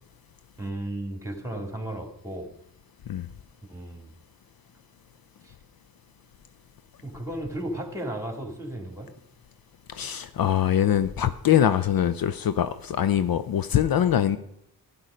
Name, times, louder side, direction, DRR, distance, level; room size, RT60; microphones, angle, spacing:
voice 1, 0.6-2.5 3.7-4.1 5.4-5.5 7.0-9.1, right 1 dB, 5° right, 2.8 m, -34 dB
voice 2, 9.9-14.4, left 10 dB, 60° left, 0.6 m, -23 dB
11.5 x 9.7 x 5.1 m
cardioid pair, 60°, 39 cm